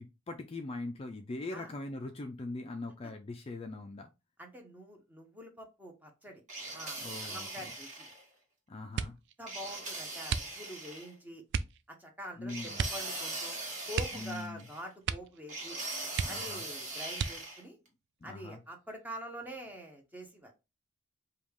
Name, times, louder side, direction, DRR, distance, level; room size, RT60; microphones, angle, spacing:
voice 1, 0.0-4.1 7.0-7.7 8.7-9.1 12.4-12.8 14.1-14.7 16.2-16.6 18.2-18.6, left 2 dB, 30° left, 6 dB, 0.4 m, -41 dB
voice 2, 4.4-6.4 6.7-8.1 9.0-9.1 9.4-11.4 11.9-13.6 13.9-15.8 16.3-17.8 18.2-20.5, equal, 10° right, 3 dB, 0.9 m, -46 dB
sound 1, 6.5-8.2 9.5-11.1 12.5-14.8 15.5-17.6, right 2 dB, 40° right, 1.5 m, -40 dB
sound 2, 8.9-9.4 10.2-10.9 11.5-11.8 12.7-13.1 13.4-13.5 13.9-14.7 15.0-15.4 15.7-15.8 16.1-16.7 17.1-17.7 18.4-19.0 19.4-19.8, right 6 dB, 60° right, 0.3 m, -35 dB
5.1 x 2.3 x 3.5 m, 0.27 s
head